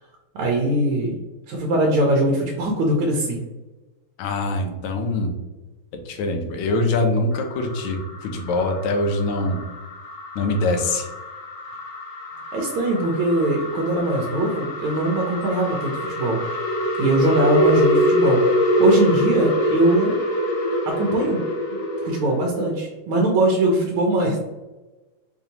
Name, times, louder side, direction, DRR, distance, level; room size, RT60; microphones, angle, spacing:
voice 1, 0.3-1.1 1.5-3.4 12.5-16.4 17.0-20.1 20.9-21.4 21.7-24.4, right 1 dB, 80° right, 0 dB, 1.5 m, -21 dB
voice 2, 4.2-5.3 5.9-9.6 10.3-11.1, left 2 dB, 85° left, 5 dB, 1.5 m, -23 dB
sound 1, 7.3-22.5, equal, 65° left, 1.0 m, -25 dB
5.0 x 2.7 x 2.8 m, 1.1 s
omnidirectional pair, 2.4 m